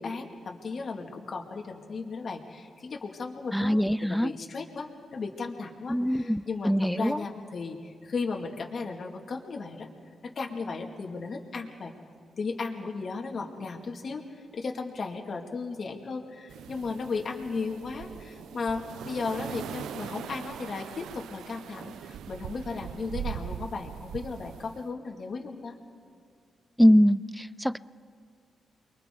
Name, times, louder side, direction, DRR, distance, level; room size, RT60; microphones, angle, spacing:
voice 1, 0.0-9.9 10.4-11.9 12.4-25.8, left 4 dB, 55° left, 1 dB, 2.2 m, -35 dB
voice 2, 3.5-4.3 5.9-7.2 26.8-27.8, equal, ahead, 17 dB, 0.4 m, -23 dB
sound 1, 16.5-24.8, right 9 dB, 90° right, 0.4 m, -41 dB
29.0 x 23.0 x 3.9 m, 2.2 s
cardioid pair, 65°, 0 cm